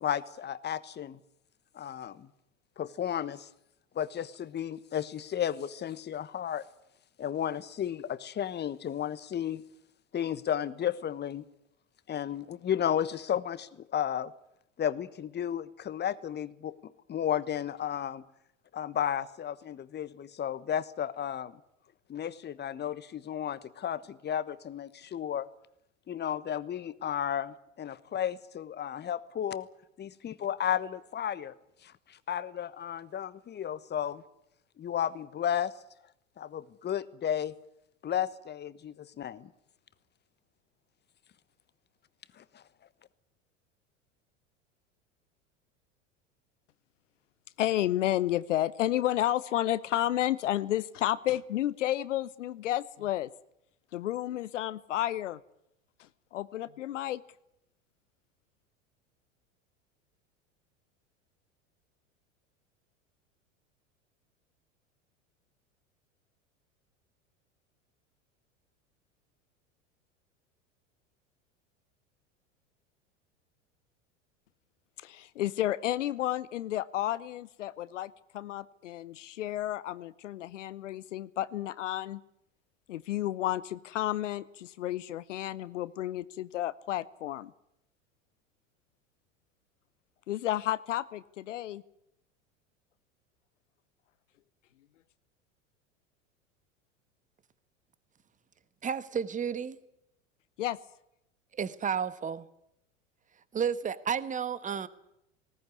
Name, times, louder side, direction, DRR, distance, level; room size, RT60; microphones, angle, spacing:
voice 1, 0.0-1.2 1.7-2.3 2.8-3.5 3.9-6.6 7.2-9.6 10.1-11.4 12.1-14.3 14.8-18.2 18.7-21.5 22.1-25.5 26.1-29.7 30.0-31.5 31.8-34.2 34.8-35.7 36.4-37.5 38.0-39.5 42.4-42.6, left 9 dB, 25° left, 16 dB, 1.3 m, -33 dB
voice 2, 47.6-53.3 53.9-55.4 56.3-57.2 75.0-82.2 82.9-87.5 90.3-91.8 100.6-100.8, left 13 dB, 70° left, 17 dB, 0.9 m, -31 dB
voice 3, 98.8-99.8 101.6-102.5 103.5-104.9, right 7 dB, 20° right, 16 dB, 1.3 m, -32 dB
19.5 x 18.5 x 9.6 m, 0.80 s
figure-of-eight pair, 80°, 38 cm